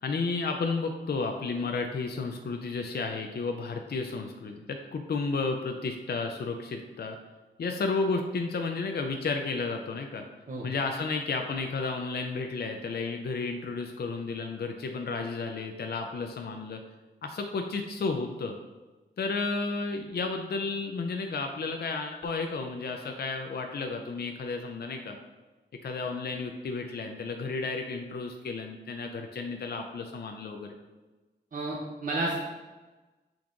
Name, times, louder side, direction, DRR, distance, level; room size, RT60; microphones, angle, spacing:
voice 1, 0.0-7.2 7.6-10.2 10.6-16.8 17.2-18.5 19.2-25.2 25.8-30.7, left 4 dB, 60° left, 4 dB, 0.4 m, -32 dB
voice 2, 31.5-32.4, right 2 dB, 45° right, -4 dB, 0.7 m, -31 dB
6.1 x 3.5 x 2.5 m, 1.2 s
wide cardioid pair, 90°, 19 cm